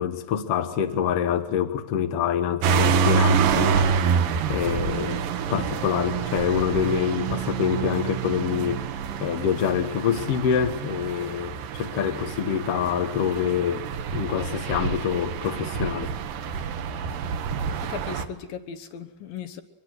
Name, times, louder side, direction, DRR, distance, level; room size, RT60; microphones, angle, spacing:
voice 1, 0.0-3.9 4.5-5.2 5.5-8.8 9.2-13.9 14.1-16.1, left 8 dB, 90° left, 1.3 m, -26 dB
sound 1, 2.6-18.3, right 6 dB, 65° right, 2.3 m, -27 dB
voice 2, 17.8-19.6, left 7 dB, 70° left, 2.4 m, -37 dB
24.0 x 22.0 x 8.2 m
omnidirectional pair, 5.2 m